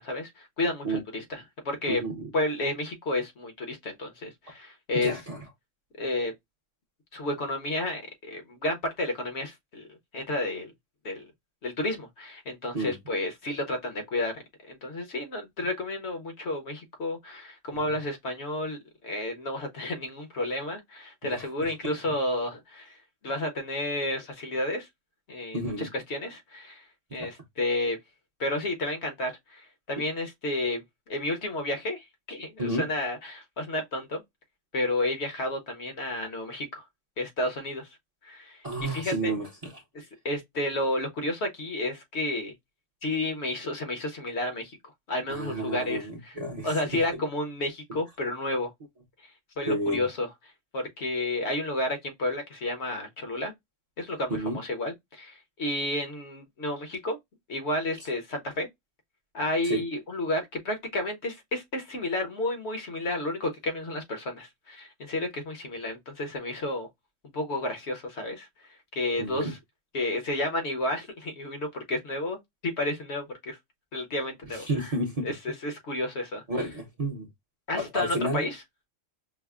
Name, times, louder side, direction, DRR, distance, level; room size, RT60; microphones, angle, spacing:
voice 1, 0.0-2.0 2.3-5.2 6.0-6.3 7.1-9.9 10.1-10.7 11.0-11.3 11.6-18.8 19.0-23.0 23.2-24.9 25.3-26.9 27.1-28.0 28.4-34.2 34.7-36.8 37.2-38.0 38.2-39.3 39.9-42.5 43.0-46.3 46.6-48.7 49.2-50.3 50.7-53.5 54.0-57.2 57.5-58.7 59.3-66.9 67.3-69.6 69.9-73.6 73.9-74.9 75.2-76.4 77.7-78.6, left 1 dB, 60° left, 1.1 m, -31 dB
voice 2, 1.9-2.3 4.9-5.4 12.7-12.9 17.7-17.8 21.3-21.9 25.5-25.9 27.1-27.3 32.6-32.9 38.6-39.7 45.3-47.2 49.7-50.0 54.3-54.6 59.6-59.8 69.2-69.5 74.5-75.3 76.5-77.3 77.7-78.5, right 1 dB, 35° right, 0.8 m, -31 dB
5.6 x 2.0 x 2.3 m
omnidirectional pair, 1.3 m